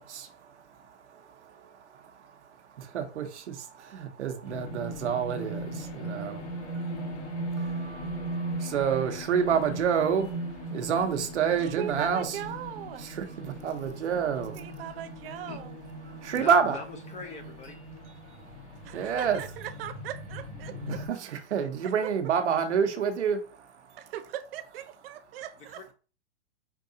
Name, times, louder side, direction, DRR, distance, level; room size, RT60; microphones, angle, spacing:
voice 1, 0.0-12.4 13.0-15.0 16.1-16.8 18.0-19.4 20.7-24.1, right 7 dB, 80° right, 1.0 m, -30 dB
sound 1, 4.4-21.1, right 1 dB, 75° left, 2.1 m, -38 dB
voice 2, 11.8-13.1 14.5-15.7 18.8-21.0 21.8-22.1 24.0-25.8, right 11 dB, 55° right, 0.6 m, -39 dB
voice 3, 16.3-17.8 25.7-25.9, left 4 dB, 20° left, 0.5 m, -42 dB
4.6 x 2.7 x 2.7 m
hypercardioid pair, 120°, 34 cm